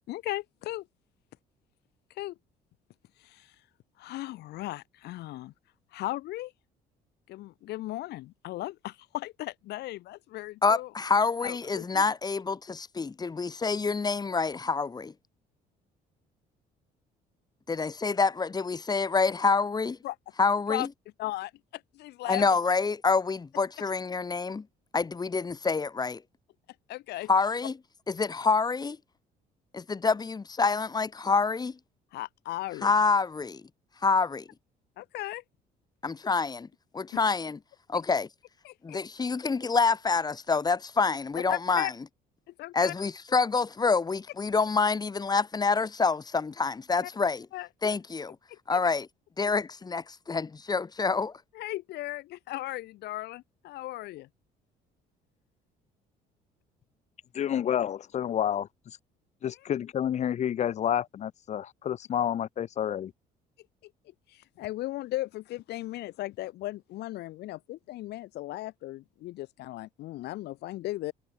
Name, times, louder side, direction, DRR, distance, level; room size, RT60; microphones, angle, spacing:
voice 1, 0.1-0.9 2.1-2.3 3.2-3.6 4.0-5.5 5.9-6.5 7.3-10.9 11.4-12.0 20.0-20.2 20.7-20.9 21.2-22.4 26.9-27.3 32.1-32.9 35.0-35.4 38.6-39.0 41.3-41.9 42.6-42.9 47.0-47.1 47.5-47.7 48.5-48.8 51.5-54.3 64.3-71.1, left 16 dB, 75° left, 1.9 m, -37 dB
voice 2, 10.6-15.1 17.7-20.0 20.4-20.9 22.3-24.7 24.9-26.2 27.3-27.7 28.1-29.0 29.7-31.7 32.8-33.6 34.0-34.4 36.0-36.7 36.9-37.6 37.9-38.3 38.8-41.9 42.7-47.5 47.8-48.4 48.7-49.1 49.4-51.3, left 4 dB, 25° left, 1.9 m, -27 dB
voice 3, 57.3-59.0 59.4-63.1, left 10 dB, 45° left, 0.7 m, -29 dB
cardioid pair, 110°, 17 cm